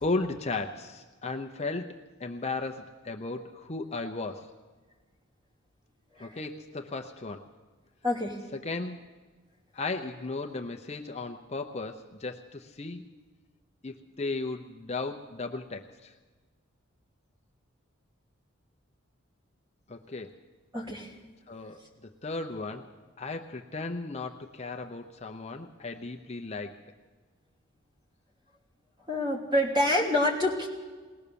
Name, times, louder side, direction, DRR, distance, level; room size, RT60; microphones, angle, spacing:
voice 1, 0.0-4.5 6.2-7.5 8.6-9.0 9.7-13.0 13.8-16.1 19.9-20.3 21.5-22.9 23.2-26.8, left 3 dB, 30° left, 4 dB, 0.8 m, -35 dB
voice 2, 8.0-8.4 20.7-21.1 29.1-30.7, left 1 dB, 20° right, -1 dB, 3.2 m, -27 dB
20.5 x 19.0 x 7.0 m, 1.4 s
head